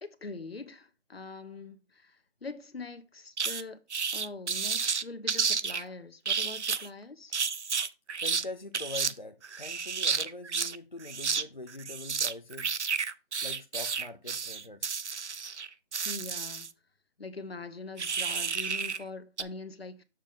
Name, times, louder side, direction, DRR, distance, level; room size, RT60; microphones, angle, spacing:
voice 1, 0.0-3.8 4.1-7.4 16.0-16.7 17.2-20.0, left 3 dB, 60° left, 1.2 m, -43 dB
sound 1, 3.4-3.6 3.9-5.8 6.3-6.9 7.3-8.4 8.7-9.1 9.4-10.8 11.0-11.4 11.7-16.7 18.0-19.0 19.4-19.5, right 6 dB, 85° right, 0.8 m, -31 dB
voice 2, 8.2-12.8 13.4-15.0, left 2 dB, 45° left, 0.5 m, -43 dB
7.2 x 6.9 x 3.6 m
figure-of-eight pair, 180°, 34 cm